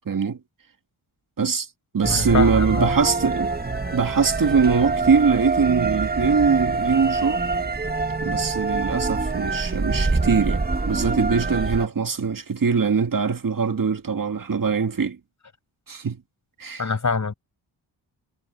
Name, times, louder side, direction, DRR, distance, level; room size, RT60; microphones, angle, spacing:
voice 1, 0.1-0.4 1.4-1.7 1.9-3.5 3.9-7.4 8.2-15.2 15.9-16.2 16.6-16.8, right 5 dB, 50° right, 2.0 m, -22 dB
voice 2, 2.0-2.9 16.8-17.3, left 5 dB, 40° left, 5.3 m, -25 dB
sound 1, 2.0-11.9, right 3 dB, 20° right, 1.5 m, -25 dB
cardioid pair, 95°, 43 cm